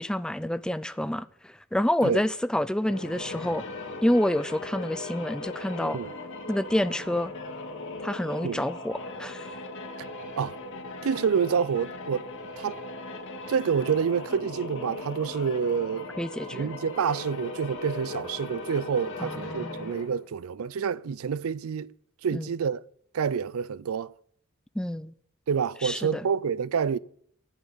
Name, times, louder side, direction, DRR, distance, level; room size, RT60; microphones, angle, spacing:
voice 1, 0.0-3.6 4.0-6.0 6.5-7.3 8.0-9.5 16.2-16.7 19.2-19.9 22.3-22.5 24.8-25.1 25.8-26.3, left 1 dB, 5° left, 0.4 m, -28 dB
sound 1, 2.7-20.2, left 2 dB, 65° left, 1.9 m, -39 dB
voice 2, 11.0-12.2 12.6-12.8 13.5-16.1 16.5-21.9 22.2-22.8 23.1-24.1 25.5-27.0, right 6 dB, 75° right, 0.4 m, -28 dB
10.5 x 7.6 x 7.0 m
head